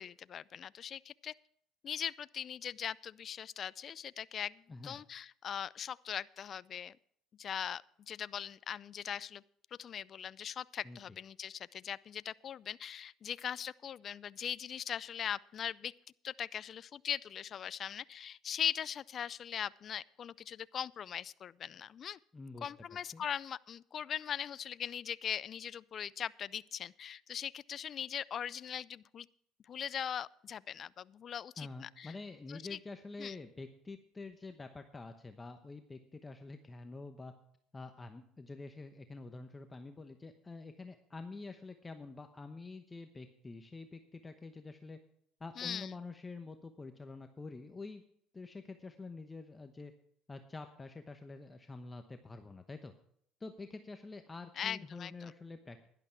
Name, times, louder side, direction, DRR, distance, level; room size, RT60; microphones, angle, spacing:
voice 1, 0.0-1.3 1.8-7.0 7.4-9.4 9.8-15.9 16.2-22.2 22.6-29.3 29.7-32.2 32.5-32.8 33.2-33.3 45.6-45.9 54.6-55.3, left 8 dB, 45° left, 21 dB, 0.4 m, -40 dB
voice 2, 22.3-22.7 23.1-23.2 31.6-37.3 37.7-45.0 45.4-48.0 48.3-49.9 50.3-52.9 53.4-55.9, left 3 dB, 20° left, 7 dB, 0.9 m, -47 dB
11.5 x 11.0 x 4.6 m, 0.67 s
supercardioid pair, 95°, 0 cm